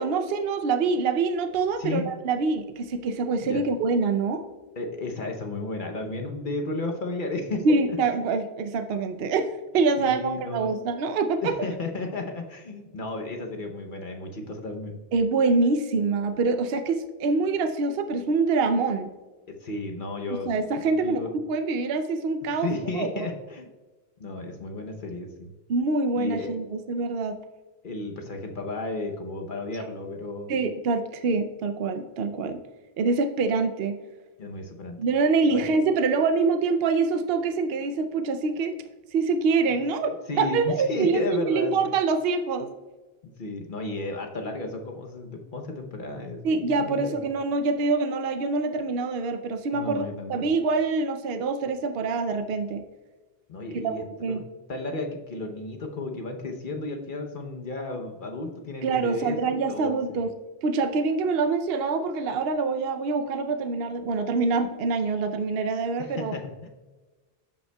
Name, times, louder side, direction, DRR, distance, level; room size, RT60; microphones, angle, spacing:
voice 1, 0.0-4.4 7.6-11.5 15.1-19.1 20.5-22.7 22.9-23.3 25.7-27.4 30.5-32.6 33.0-34.0 35.0-38.8 39.1-42.7 46.4-52.8 53.7-54.4 58.8-60.3 60.6-66.3, right 4 dB, 70° right, 8 dB, 0.8 m, -25 dB
voice 2, 4.8-8.0 10.0-10.7 11.4-15.0 19.6-20.6 20.9-21.3 22.6-23.7 24.2-25.5 26.2-26.5 27.8-30.6 34.4-35.0 35.5-35.7 39.7-39.8 40.3-41.9 43.2-47.2 49.7-50.5 53.5-54.4 54.7-60.2 66.0-66.7, left 2 dB, 55° left, 2 dB, 0.9 m, -33 dB
13.5 x 5.4 x 2.2 m, 1.2 s
omnidirectional pair, 1.1 m